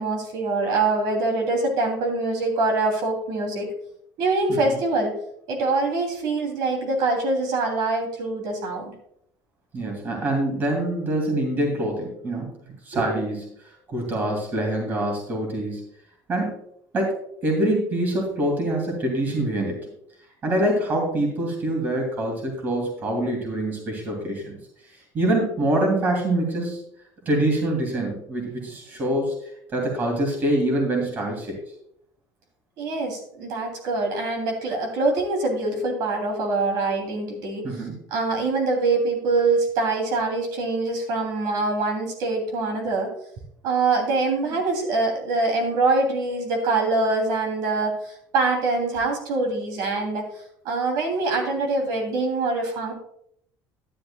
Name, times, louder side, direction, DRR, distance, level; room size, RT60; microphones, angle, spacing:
voice 1, 0.0-3.7 4.2-5.1 5.5-8.9 12.9-13.1 32.8-37.8 38.1-43.1 43.6-50.3 50.6-52.9, right 3 dB, 70° right, 2 dB, 2.9 m, -24 dB
voice 2, 9.7-12.5 12.8-13.4 13.9-15.8 16.3-16.6 16.9-17.2 17.4-19.8 20.4-24.6 25.1-26.8 27.2-29.3 29.7-31.6 37.6-37.9, right 1 dB, 30° right, 1 dB, 2.7 m, -25 dB
11.5 x 10.5 x 2.3 m, 0.69 s
cardioid pair, 180°, 7 cm